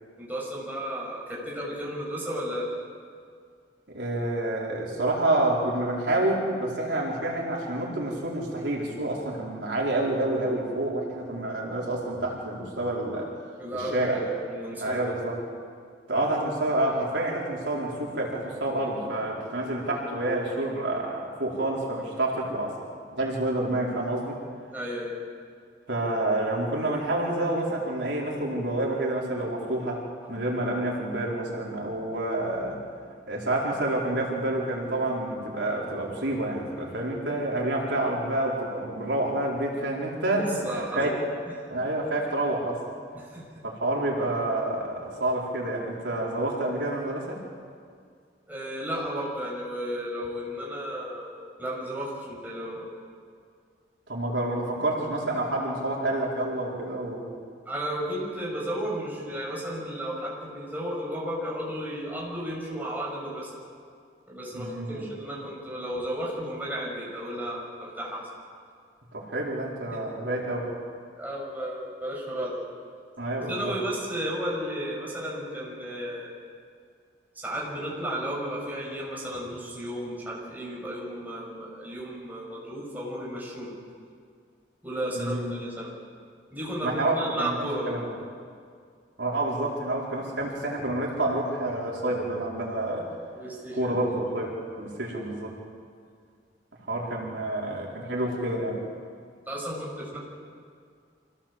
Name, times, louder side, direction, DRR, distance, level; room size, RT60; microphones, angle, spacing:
voice 1, 0.2-2.7 13.6-15.1 24.7-25.2 40.4-41.2 43.1-43.4 48.5-52.8 57.7-63.6 64.3-68.3 71.2-72.6 73.5-76.3 77.3-83.7 84.8-85.9 86.5-87.9 93.3-94.0 99.5-100.2, equal, 10° right, -4 dB, 5.8 m, -33 dB
voice 2, 3.9-13.3 13.7-14.3 14.8-15.4 16.1-22.8 23.1-24.3 25.9-32.8 33.3-41.1 41.7-42.8 43.6-47.4 54.1-57.3 64.5-65.0 69.1-70.7 73.2-73.7 85.1-85.5 86.8-88.1 89.2-93.1 93.8-95.5 96.9-98.8, right 1 dB, 90° right, -3 dB, 4.4 m, -28 dB
25.5 x 17.0 x 7.5 m, 2.2 s
head